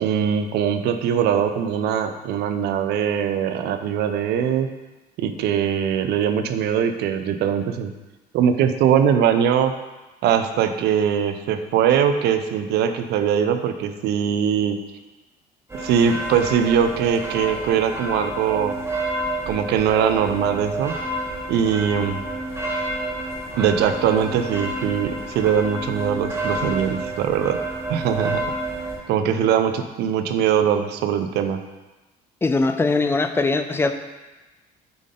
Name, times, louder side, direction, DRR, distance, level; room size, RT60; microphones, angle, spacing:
voice 1, 0.0-4.7 5.2-7.9 8.3-9.7 10.2-14.8 15.7-18.7 19.5-21.0 21.5-22.2 23.6-27.6 27.9-28.4 29.1-31.6, right 8 dB, 75° right, 8 dB, 0.6 m, -21 dB
sound 1, 15.7-29.0, right 1 dB, 15° right, 1.3 m, -29 dB
voice 2, 32.4-33.9, left 3 dB, 15° left, 8 dB, 0.4 m, -21 dB
7.7 x 3.8 x 3.7 m, 1.1 s
cardioid pair, 110°, 17 cm